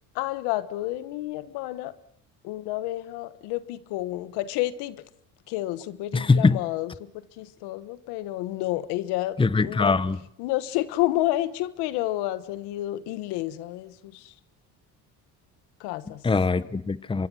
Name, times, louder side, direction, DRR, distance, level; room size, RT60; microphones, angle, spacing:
voice 1, 0.1-1.9 2.4-5.0 5.5-9.9 10.4-14.3 15.8-16.2, left 16 dB, 85° left, 1.2 m, -30 dB
voice 2, 6.1-6.6 9.4-10.2 16.2-17.3, left 4 dB, 15° left, 0.8 m, -22 dB
25.0 x 23.5 x 6.3 m
supercardioid pair, 90°, 38 cm